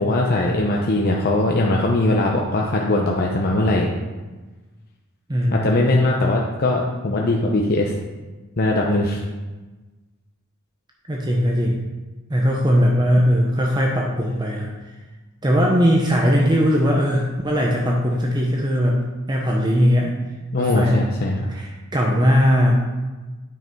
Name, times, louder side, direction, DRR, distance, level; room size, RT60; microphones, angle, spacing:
voice 1, 0.0-3.9 5.5-7.9 8.6-9.2 20.5-21.5, left 2 dB, 45° left, -1 dB, 0.8 m, -20 dB
voice 2, 5.3-5.9 11.1-11.8 12.3-14.7 15.4-19.0 19.3-20.2 20.6-21.0 21.5-22.8, equal, 20° right, -2 dB, 0.9 m, -19 dB
9.3 x 5.8 x 4.6 m, 1.2 s
head